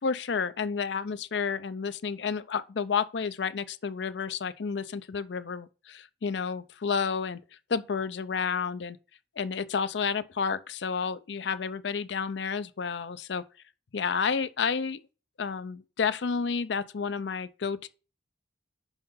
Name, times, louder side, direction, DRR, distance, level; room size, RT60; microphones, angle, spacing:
voice 1, 0.0-7.4 7.7-9.0 9.4-13.4 13.9-15.0 15.4-17.9, left 5 dB, 70° left, 0.5 m, -30 dB
5.7 x 5.6 x 5.5 m
head